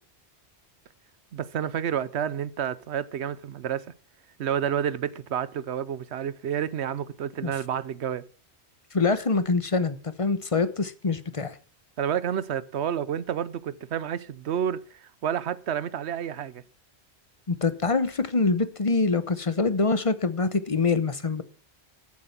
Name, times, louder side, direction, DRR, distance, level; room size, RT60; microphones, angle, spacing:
voice 1, 1.3-3.9 4.4-8.2 12.0-16.6, right 9 dB, 80° right, 1.0 m, -30 dB
voice 2, 8.9-11.6 17.5-21.4, left 4 dB, 30° left, 0.9 m, -25 dB
13.5 x 7.5 x 5.8 m
omnidirectional pair, 1.1 m